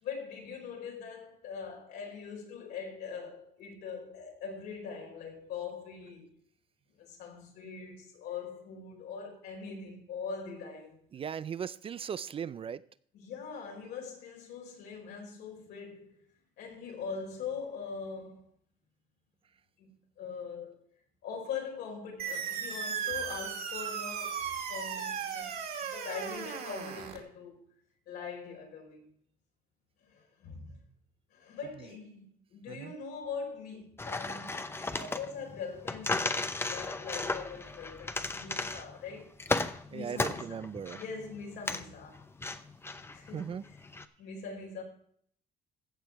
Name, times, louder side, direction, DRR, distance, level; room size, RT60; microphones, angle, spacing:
voice 1, 0.0-6.3 6.9-11.0 13.1-16.2 16.6-18.5 19.8-20.8 21.2-25.5 25.8-27.6 28.1-29.1 30.1-30.8 31.3-39.3 39.9-40.6 40.9-42.2 43.1-43.8 44.2-44.8, left 5 dB, 80° left, 4.7 m, -42 dB
voice 2, 11.1-12.8 32.7-32.9 39.9-41.0 43.3-43.6, right 7 dB, 35° right, 0.4 m, -38 dB
sound 1, 22.2-27.2, right 7 dB, 60° right, 2.5 m, -36 dB
sound 2, 34.0-44.0, left 2 dB, 15° left, 0.7 m, -35 dB
15.5 x 7.1 x 4.6 m
cardioid pair, 110°, 17 cm